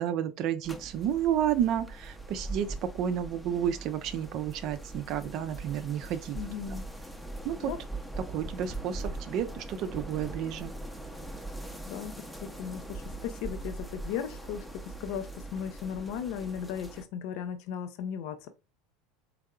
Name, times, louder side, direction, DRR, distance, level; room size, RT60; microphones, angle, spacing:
voice 1, 0.0-6.4 7.4-7.7 8.3-10.7, right 10 dB, 55° right, 0.5 m, -31 dB
sound 1, 0.6-17.0, right 2 dB, 5° left, 0.7 m, -41 dB
voice 2, 6.3-6.8 7.6-7.8 11.9-12.1 12.4-18.5, left 8 dB, 60° left, 0.5 m, -36 dB
3.6 x 3.3 x 2.3 m
hypercardioid pair, 80°, 0 cm